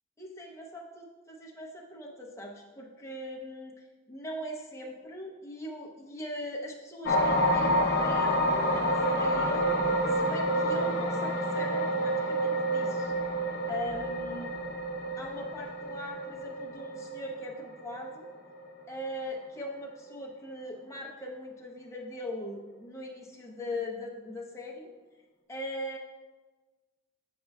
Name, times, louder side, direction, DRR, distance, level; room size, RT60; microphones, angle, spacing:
voice 1, 0.2-9.8 10.1-13.1 13.7-14.5 15.2-18.3 18.9-24.9 25.5-26.0, left 1 dB, 15° left, -3 dB, 0.8 m, -40 dB
sound 1, 7.1-19.4 19.9-20.1, equal, 55° left, 0.7 m, -29 dB
8.5 x 5.4 x 2.3 m, 1.3 s
head